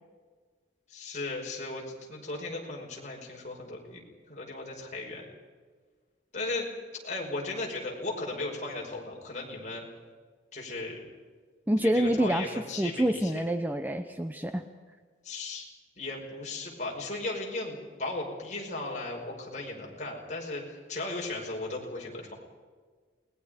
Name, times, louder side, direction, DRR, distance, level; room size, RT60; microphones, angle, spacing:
voice 1, 0.9-4.0 4.3-5.2 6.3-6.7 7.0-9.8 10.5-11.0 11.8-13.4 15.2-15.7 16.0-22.3, left 2 dB, 40° left, -2 dB, 5.6 m, -36 dB
voice 2, 11.7-14.6, right 1 dB, 10° right, 7 dB, 0.8 m, -27 dB
28.5 x 21.0 x 5.2 m, 1.5 s
head